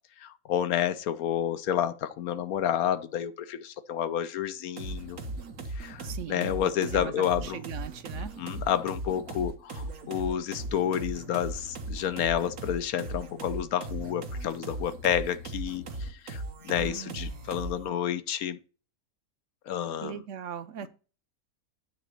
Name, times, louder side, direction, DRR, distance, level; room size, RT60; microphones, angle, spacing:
voice 1, 0.2-5.2 5.8-7.6 8.4-18.6 19.7-20.1 20.8-20.9, left 10 dB, 90° left, 1.2 m, -30 dB
sound 1, 4.8-17.9, right 2 dB, 80° right, 1.6 m, -38 dB
voice 2, 6.0-8.3 16.7-17.5 20.0-20.9, right 9 dB, 65° right, 1.0 m, -40 dB
9.0 x 3.9 x 6.5 m
omnidirectional pair, 1.5 m